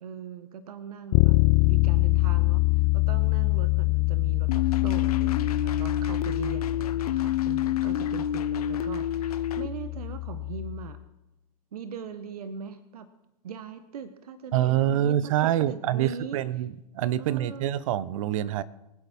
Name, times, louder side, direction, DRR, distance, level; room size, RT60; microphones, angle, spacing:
voice 1, 0.0-1.3 1.6-11.0 11.7-13.1 13.4-16.4 17.2-17.7, right 7 dB, 75° right, 11 dB, 1.1 m, -40 dB
Bass guitar, 1.1-10.9, left 22 dB, 35° left, 0.5 m, -25 dB
sound 1, 4.5-9.7, left 11 dB, 70° left, 0.9 m, -28 dB
voice 2, 14.5-18.6, right 12 dB, 55° right, 17 dB, 0.8 m, -26 dB
24.5 x 8.2 x 4.3 m, 0.91 s
hypercardioid pair, 125°, 20 cm